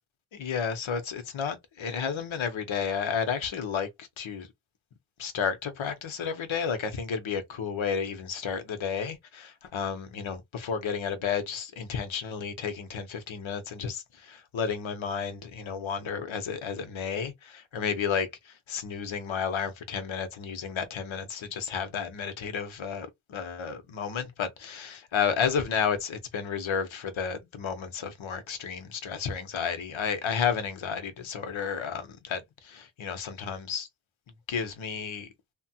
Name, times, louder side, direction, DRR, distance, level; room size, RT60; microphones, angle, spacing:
voice 1, 0.3-4.5 5.2-33.9 34.5-35.3, left 6 dB, 70° left, 1.0 m, -32 dB
3.1 x 2.3 x 2.8 m
wide cardioid pair, 105°, 49 cm